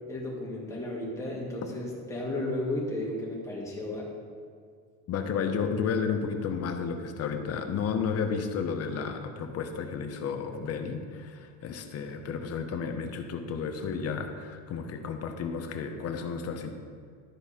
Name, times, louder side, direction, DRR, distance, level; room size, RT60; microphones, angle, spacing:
voice 1, 0.1-4.1, left 1 dB, 10° left, -4 dB, 1.9 m, -33 dB
voice 2, 5.1-16.7, left 6 dB, 40° left, 6 dB, 0.9 m, -32 dB
12.5 x 4.6 x 4.2 m, 2.1 s
cardioid pair, 135°, 36 cm